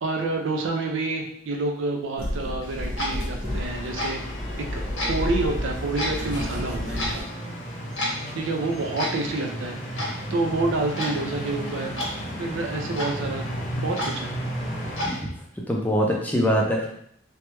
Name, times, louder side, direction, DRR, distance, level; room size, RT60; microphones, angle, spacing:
voice 1, 0.0-4.8 5.1-7.2 8.3-9.8 10.3-12.0 12.4-13.4 13.8-14.3, right 3 dB, 70° right, 3 dB, 0.4 m, -28 dB
sound 1, 2.2-7.2, left 1 dB, 35° right, 1.3 m, -31 dB
Clock, 2.6-15.2, left 1 dB, 80° left, 1.0 m, -35 dB
sound 2, 3.4-15.1, equal, 35° left, 0.7 m, -34 dB
voice 2, 15.7-16.9, equal, 10° left, -2 dB, 0.4 m, -23 dB
3.1 x 2.2 x 3.0 m, 0.69 s
head